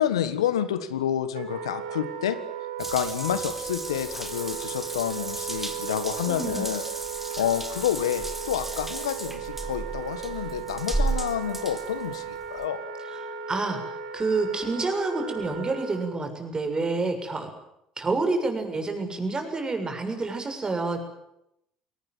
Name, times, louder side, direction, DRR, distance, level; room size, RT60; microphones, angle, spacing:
voice 1, 0.0-2.4 2.8-6.8 7.4-12.8, left 10 dB, 85° left, 12 dB, 1.5 m, -29 dB
Wind instrument woodwind instrument, 1.3-16.2, right 7 dB, 75° right, 3.8 m, -36 dB
Water tap faucet / Bathtub (filling or washing) / Drip, 2.8-12.6, right 2 dB, 5° right, 4.1 m, -34 dB
voice 2, 6.3-6.7 13.3-13.8 14.1-17.5 18.0-21.0, right 3 dB, 25° right, 6 dB, 7.0 m, -28 dB
23.0 x 19.0 x 9.3 m, 0.80 s
hypercardioid pair, 60°, 3 cm